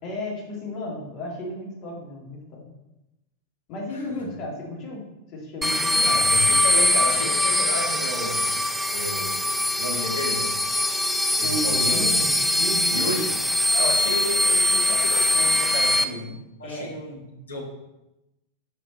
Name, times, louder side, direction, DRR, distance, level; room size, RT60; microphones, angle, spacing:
voice 1, 0.0-2.7 3.7-5.1 5.3-6.2 11.4-13.2 16.6-16.9, left 1 dB, 40° left, -3 dB, 2.1 m, -33 dB
sound 1, 5.6-16.0, left 1 dB, ahead, 0.4 m, -22 dB
voice 2, 6.0-8.5 8.9-9.4 9.8-10.5 11.4-12.0 12.9-13.3 13.7-17.2 17.5-17.6, left 1 dB, 70° left, 0 dB, 1.5 m, -32 dB
5.8 x 4.9 x 3.9 m, 0.94 s
figure-of-eight pair, 90°, 0 cm